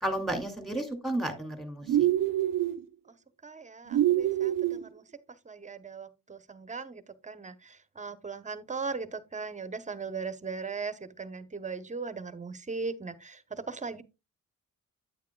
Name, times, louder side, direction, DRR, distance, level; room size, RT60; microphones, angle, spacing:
voice 1, 0.0-2.1, right 1 dB, ahead, 2.3 m, -32 dB
sound 1, 1.9-2.8 3.9-4.8, right 12 dB, 90° right, 0.6 m, -25 dB
voice 2, 3.4-5.0 5.4-14.0, right 4 dB, 20° right, 0.8 m, -38 dB
9.3 x 8.9 x 2.2 m
cardioid pair, 115°, 32 cm